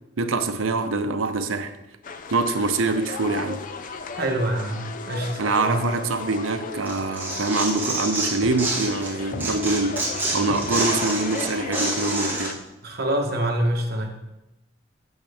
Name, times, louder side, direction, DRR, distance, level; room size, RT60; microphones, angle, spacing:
voice 1, 0.2-1.7 2.3-3.7 5.4-10.1 10.3-12.6, right 3 dB, 75° right, 8 dB, 0.7 m, -24 dB
sound 1, 2.0-12.5, left 5 dB, 40° left, 0.4 m, -35 dB
voice 2, 4.1-5.8 12.8-14.1, right 1 dB, 50° right, 1 dB, 1.2 m, -26 dB
Tearing, 6.8-9.1 9.4-12.5, right 2 dB, 10° right, 2.0 m, -27 dB
8.8 x 6.4 x 3.5 m, 0.97 s
head